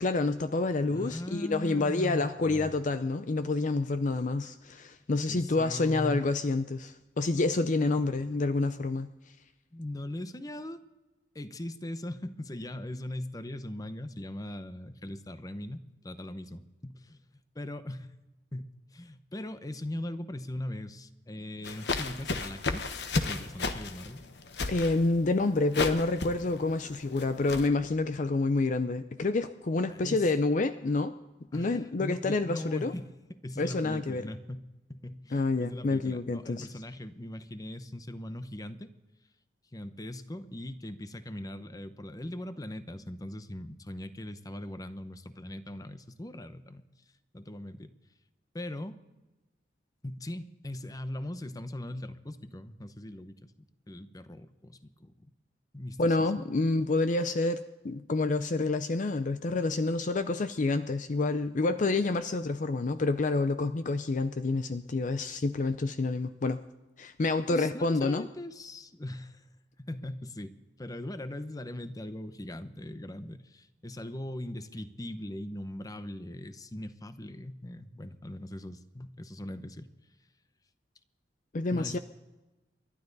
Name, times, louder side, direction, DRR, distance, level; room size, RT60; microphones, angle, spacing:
voice 1, 0.0-9.1 24.7-31.1 31.5-32.9 33.6-34.3 35.3-36.7 56.0-57.6 57.8-66.6 67.0-68.3 81.5-82.0, left 3 dB, 45° left, 11 dB, 0.5 m, -28 dB
voice 2, 0.9-2.7 5.3-6.3 8.0-8.1 9.7-10.8 11.3-18.1 18.5-24.2 29.9-30.3 31.5-34.6 34.9-38.9 39.7-46.8 47.3-47.9 48.5-49.0 50.0-53.5 53.9-55.1 55.7-56.3 67.5-69.5 69.8-79.9 81.7-82.0, left 1 dB, 20° left, 11 dB, 0.8 m, -40 dB
sound 1, 21.6-27.7, left 3 dB, 70° left, 1.1 m, -34 dB
29.5 x 12.0 x 4.0 m, 1.1 s
head